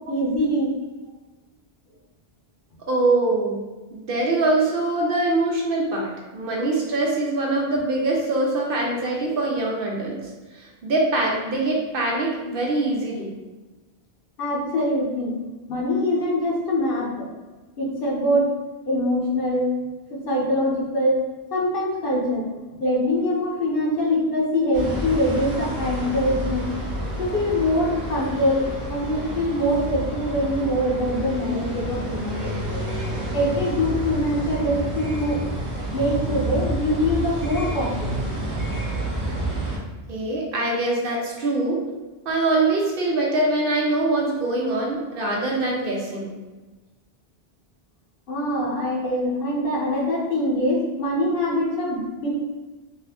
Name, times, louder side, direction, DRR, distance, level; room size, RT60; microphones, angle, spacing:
voice 1, 0.1-0.8 14.4-15.4 15.7-17.3 17.8-18.5 18.9-19.7 20.1-22.5 22.8-26.7 27.2-32.8 33.3-35.4 35.9-38.3 48.3-52.4, left 1 dB, 60° left, -3 dB, 0.8 m, -23 dB
voice 2, 2.9-3.6 3.9-13.3 40.1-41.8 42.2-46.4, right 2 dB, 60° right, -2 dB, 0.8 m, -23 dB
sound 1, 24.7-39.8, right 1 dB, 30° right, 1.0 m, -29 dB
2.7 x 2.4 x 3.4 m, 1.2 s
omnidirectional pair, 1.1 m